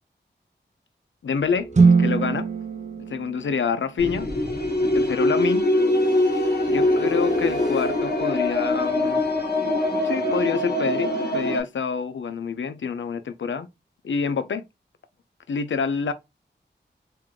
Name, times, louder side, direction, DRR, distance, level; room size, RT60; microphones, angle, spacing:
voice 1, 1.2-2.5 3.1-4.3 4.9-5.7 6.7-9.2 10.0-13.7 14.0-14.6 15.5-16.1, left 5 dB, 85° left, 0.5 m, -27 dB
sound 1, 1.4-3.7 5.6-10.3, right 1 dB, 35° left, 1.7 m, -37 dB
sound 2, 1.7-4.1, right 4 dB, 40° right, 0.6 m, -21 dB
sound 3, 4.0-11.6, left 1 dB, 60° left, 1.2 m, -23 dB
3.5 x 2.5 x 3.1 m
cardioid pair, 40°, 19 cm